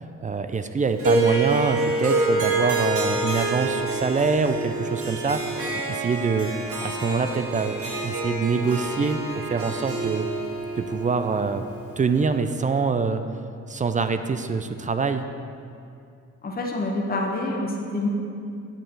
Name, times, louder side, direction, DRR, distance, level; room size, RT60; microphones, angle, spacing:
voice 1, 0.2-6.5 6.8-7.8 8.0-10.3 10.8-11.6 12.0-13.2 13.7-15.3, right 4 dB, 25° right, 9 dB, 0.4 m, -25 dB
Harp, 1.0-12.3, right 2 dB, 50° right, 1.7 m, -27 dB
voice 2, 16.4-18.1, left 2 dB, 30° left, 0 dB, 1.1 m, -27 dB
8.8 x 6.7 x 4.5 m, 2.5 s
cardioid pair, 90°, 30 cm